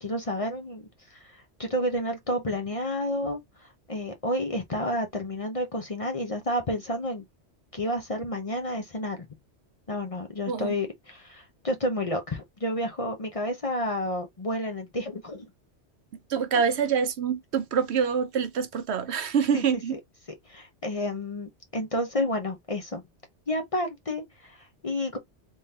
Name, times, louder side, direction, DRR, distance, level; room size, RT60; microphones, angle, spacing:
voice 1, 0.0-7.2 7.7-9.2 9.9-15.5 19.5-19.6 19.9-20.0 20.4-23.0 23.5-25.2, left 1 dB, 35° left, 0.8 m, -30 dB
voice 2, 16.3-20.0, right 7 dB, 70° right, 1.0 m, -26 dB
3.7 x 3.1 x 2.7 m
omnidirectional pair, 1.2 m